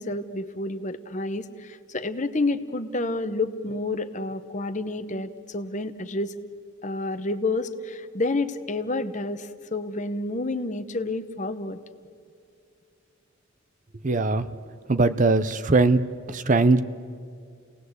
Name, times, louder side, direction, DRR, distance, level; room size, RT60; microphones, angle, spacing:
voice 1, 0.0-6.4 6.8-11.8, left 2 dB, 35° left, 10 dB, 1.0 m, -29 dB
voice 2, 14.0-14.5 14.9-16.0 16.3-16.8, right 3 dB, 40° right, 13 dB, 0.7 m, -20 dB
29.5 x 18.5 x 8.1 m, 2.3 s
head